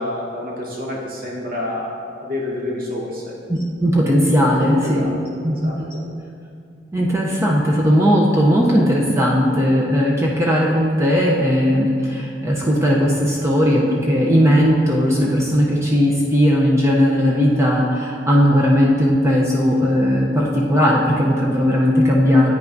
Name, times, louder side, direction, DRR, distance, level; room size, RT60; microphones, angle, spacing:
voice 1, 0.0-3.3 4.8-5.1 5.5-6.0, left 1 dB, 50° right, -4 dB, 1.2 m, -28 dB
voice 2, 3.5-5.1 5.4-5.9 6.9-22.5, equal, 15° right, -3 dB, 0.5 m, -17 dB
9.2 x 5.6 x 2.6 m, 2.3 s
head